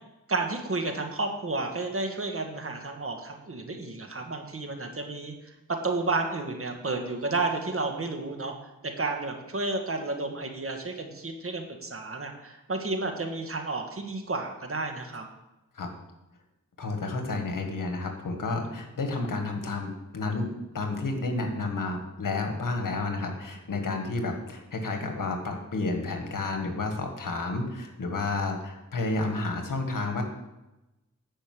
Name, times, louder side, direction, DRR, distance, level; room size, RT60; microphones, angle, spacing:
voice 1, 0.3-8.5 8.8-15.3, right 3 dB, 45° right, 4 dB, 1.6 m, -31 dB
voice 2, 16.8-30.2, left 3 dB, 85° left, 4 dB, 1.7 m, -31 dB
10.5 x 5.3 x 7.7 m, 0.98 s
wide cardioid pair, 85°, 32 cm